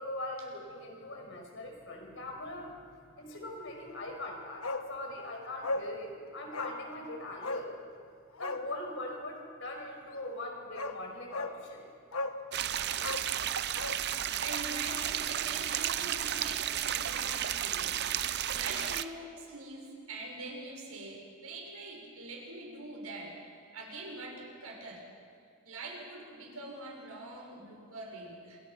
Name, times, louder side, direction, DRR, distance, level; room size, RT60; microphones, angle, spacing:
voice 1, 0.0-2.7 3.2-7.7 8.4-11.8, left 1 dB, 55° left, 1 dB, 5.3 m, -41 dB
Bark, 4.6-4.9 5.2-5.3 5.6-5.9 6.5-6.8 7.4-7.7 8.3-8.7 10.3-10.4 10.8-11.0 11.3-11.6 12.1-12.4 13.0-14.0 14.3-14.4, left 2 dB, 75° left, 1.3 m, -36 dB
sound 1, 12.5-19.0, right 10 dB, 50° right, 0.6 m, -33 dB
voice 2, 14.4-18.0 18.5-25.0 25.6-28.6, right 2 dB, 80° right, 0 dB, 6.3 m, -44 dB
27.0 x 23.5 x 6.0 m, 2.3 s
head